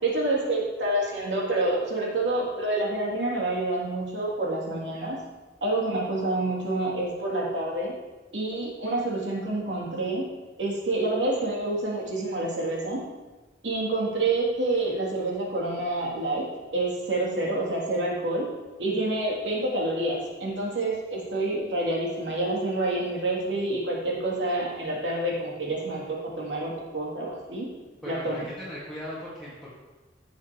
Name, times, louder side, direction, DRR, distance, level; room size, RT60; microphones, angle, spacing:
voice 1, 0.0-5.2 5.6-7.9 8.3-10.2 10.6-13.1 13.6-16.4 16.7-18.5 18.8-27.7 28.1-28.5, right 2 dB, 80° right, -4 dB, 2.9 m, -28 dB
voice 2, 27.9-29.7, equal, ahead, -9 dB, 1.9 m, -38 dB
16.0 x 7.0 x 3.1 m, 1.2 s
head